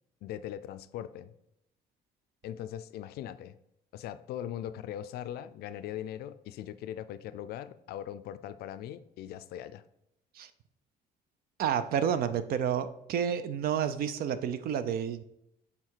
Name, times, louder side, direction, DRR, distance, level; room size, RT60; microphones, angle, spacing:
voice 1, 0.2-1.3 2.4-3.6 3.9-9.8, left 11 dB, 70° left, 13 dB, 0.4 m, -40 dB
voice 2, 11.6-15.2, right 8 dB, 60° right, 12 dB, 0.5 m, -30 dB
6.6 x 3.6 x 4.5 m, 0.81 s
cardioid pair, 110°, 17 cm